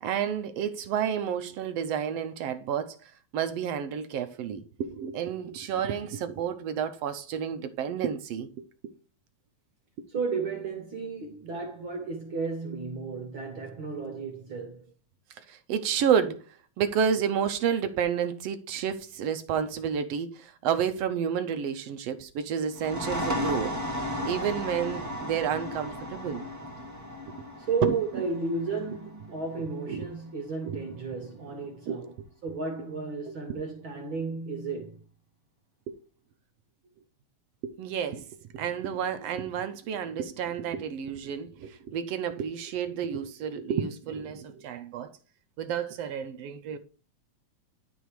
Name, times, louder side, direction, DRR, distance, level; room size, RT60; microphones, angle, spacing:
voice 1, 0.0-8.9 15.4-23.7 24.3-26.5 27.8-28.0 29.6-30.1 30.6-30.8 31.2-31.3 31.9-32.1 33.3-33.6 35.9-36.0 37.6-45.1 45.6-46.8, right 8 dB, 70° right, 1.6 m, -30 dB
voice 2, 10.1-14.9 27.6-32.1 32.4-35.0, right 4 dB, 55° right, 1.7 m, -33 dB
sound 1, 22.7-30.1, left 1 dB, 10° right, 1.3 m, -35 dB
12.0 x 4.1 x 4.7 m
omnidirectional pair, 3.3 m